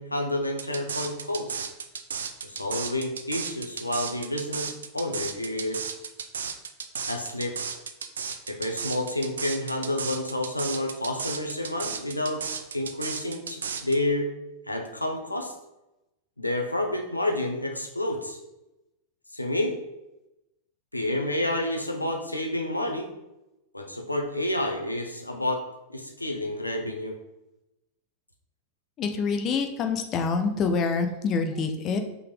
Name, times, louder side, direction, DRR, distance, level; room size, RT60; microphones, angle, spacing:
voice 1, 0.0-1.6 2.4-5.9 7.1-7.6 8.5-12.4 12.7-14.3 14.7-15.5 16.4-18.4 19.3-19.8 20.9-23.1 23.7-25.6 25.9-27.1, left 1 dB, 85° left, 3 dB, 1.0 m, -29 dB
sound 1, 0.6-14.0, right 6 dB, 70° right, 0.5 m, -34 dB
voice 2, 29.0-32.0, left 4 dB, 30° left, 6 dB, 0.8 m, -26 dB
5.6 x 4.1 x 5.2 m, 0.93 s
figure-of-eight pair, 90°, 0 cm